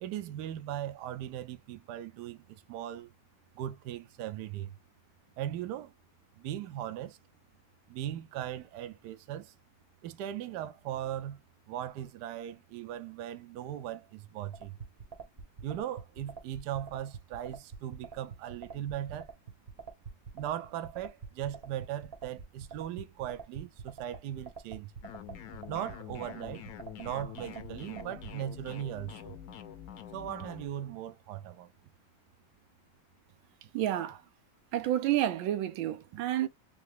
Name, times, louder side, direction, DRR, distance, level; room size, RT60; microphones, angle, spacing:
voice 1, 0.0-3.1 3.5-4.8 5.4-5.9 6.4-7.2 7.9-9.5 10.0-11.4 11.7-14.8 15.6-19.3 20.3-24.9 25.7-26.6 27.0-29.3 30.1-31.7, right 11 dB, 70° right, 1.1 m, -38 dB
sound 1, 14.5-28.3, right 5 dB, 45° right, 0.9 m, -45 dB
sound 2, 25.0-30.7, left 9 dB, 65° left, 0.9 m, -46 dB
voice 2, 33.7-34.2 34.7-36.5, right 12 dB, 90° right, 1.4 m, -30 dB
3.7 x 3.2 x 3.2 m
omnidirectional pair, 2.1 m